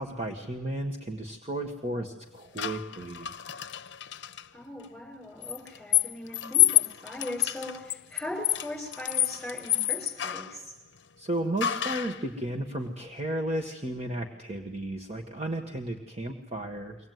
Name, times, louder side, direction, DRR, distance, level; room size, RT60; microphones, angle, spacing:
voice 1, 0.0-3.3 11.2-17.0, right 1 dB, 30° right, 2 dB, 1.8 m, -33 dB
sound 1, 2.6-4.4 5.4-10.6 11.6-12.2, left 13 dB, 65° left, 0.7 m, -28 dB
voice 2, 4.5-10.7, left 1 dB, ahead, -1 dB, 7.7 m, -39 dB
23.5 x 18.5 x 9.5 m, 1.0 s
head